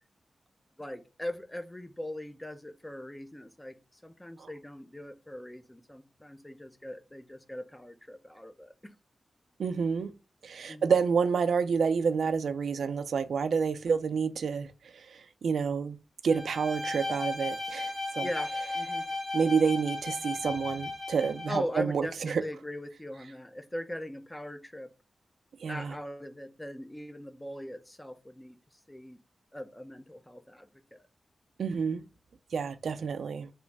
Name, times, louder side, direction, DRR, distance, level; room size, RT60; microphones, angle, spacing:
voice 1, 0.8-8.9 10.7-10.9 18.2-19.1 21.5-24.9 25.7-28.6 28.9-29.2 29.5-31.0, left 1 dB, 10° left, 0.5 m, -40 dB
voice 2, 9.6-10.1 10.4-16.0 16.2-18.3 19.3-22.4 25.6-26.0 31.6-32.0 32.5-33.5, right 6 dB, 85° right, 0.4 m, -29 dB
Bowed string instrument, 16.3-21.6, left 2 dB, 45° left, 1.4 m, -35 dB
3.1 x 3.1 x 4.7 m
wide cardioid pair, 160°, 0 cm